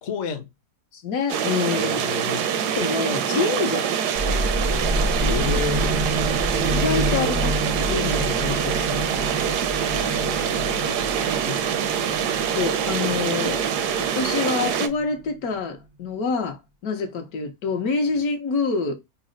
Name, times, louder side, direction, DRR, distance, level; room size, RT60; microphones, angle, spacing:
voice 1, 0.0-0.5 1.7-2.4 5.2-6.0 9.9-11.0, left 6 dB, 55° left, 1.0 m, -31 dB
voice 2, 0.9-2.0 2.8-4.0 6.7-9.4 11.4-11.6 12.5-13.7 14.0-18.9, left 4 dB, 70° left, 1.2 m, -27 dB
sound 1, 1.3-14.9, right 8 dB, 85° right, 1.1 m, -25 dB
sound 2, 4.2-15.5, equal, 50° right, 0.4 m, -29 dB
4.0 x 2.0 x 3.7 m
omnidirectional pair, 1.7 m